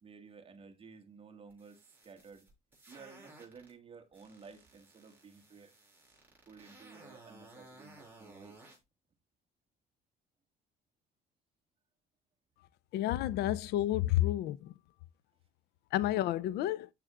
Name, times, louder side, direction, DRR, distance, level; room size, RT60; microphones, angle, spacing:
voice 1, 0.0-2.5 2.9-5.7 6.5-8.7 13.4-13.5, right 5 dB, 35° right, 1.7 m, -54 dB
sound 1, 1.5-3.7 4.1-8.8, right 2 dB, 10° right, 6.0 m, -57 dB
voice 2, 12.9-14.7 15.9-16.9, left 14 dB, 75° left, 0.5 m, -30 dB
12.5 x 7.4 x 2.4 m
cardioid pair, 110°, 17 cm